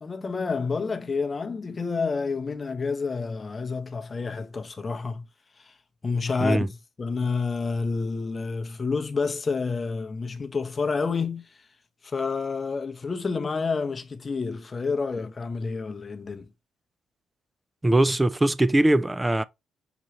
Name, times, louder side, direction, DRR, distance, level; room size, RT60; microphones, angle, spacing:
voice 1, 0.0-5.3 5.6-5.7 6.0-6.7 7.0-11.4 12.0-16.5, left 4 dB, 35° left, 0.8 m, -29 dB
voice 2, 17.8-19.4, right 1 dB, 15° right, 0.4 m, -21 dB
5.9 x 2.4 x 3.1 m
hypercardioid pair, 50°, 0 cm